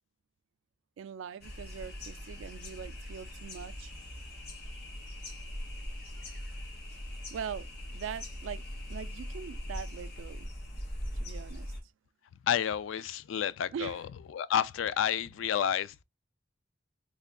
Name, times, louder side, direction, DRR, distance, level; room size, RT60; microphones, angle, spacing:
voice 1, 1.0-3.9 7.3-8.6 8.9-10.5 11.1-11.7 13.7-14.0, right 7 dB, 90° right, 0.3 m, -42 dB
sound 1, 1.4-11.8, equal, 55° left, 1.0 m, -41 dB
voice 2, 12.4-14.0 14.3-16.0, left 9 dB, 90° left, 0.3 m, -30 dB
3.3 x 2.2 x 3.5 m
head